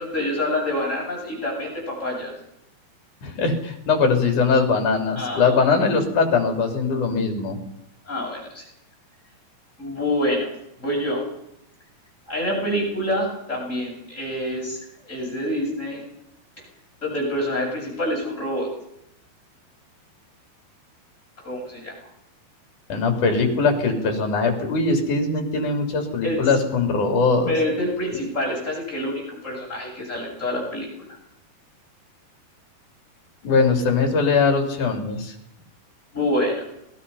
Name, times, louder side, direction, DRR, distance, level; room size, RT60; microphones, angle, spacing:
voice 1, 0.0-2.3 5.1-5.9 8.1-8.6 9.8-10.5 10.8-11.2 12.3-16.0 17.0-18.7 21.4-21.9 26.2-26.4 27.5-30.9 34.0-34.1 36.1-36.6, left 1 dB, 15° left, -3 dB, 8.1 m, -27 dB
voice 2, 3.2-7.6 22.9-27.5 33.4-35.3, left 4 dB, 50° left, 4 dB, 4.5 m, -21 dB
26.5 x 20.5 x 5.6 m, 0.79 s
omnidirectional pair, 4.7 m